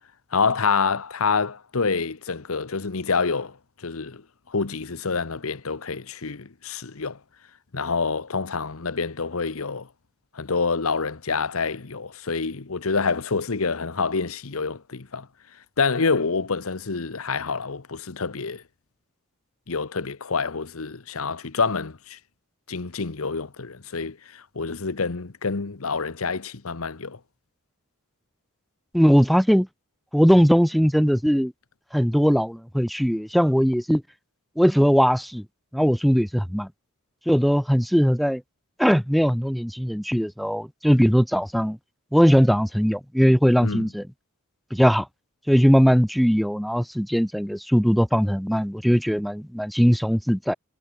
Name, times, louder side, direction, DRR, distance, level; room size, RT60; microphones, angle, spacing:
voice 1, 0.3-3.6 3.8-4.2 4.5-7.2 7.7-9.9 10.3-15.3 15.8-18.6 19.7-22.2 22.7-27.2 43.6-43.9, left 4 dB, 85° left, 1.1 m, -27 dB
voice 2, 28.9-29.7 30.1-31.5 31.9-34.0 34.6-35.4 35.7-36.7 37.3-38.4 38.8-41.8 42.1-44.1 44.7-45.1 45.5-50.5, equal, ahead, 2.3 m, -20 dB
head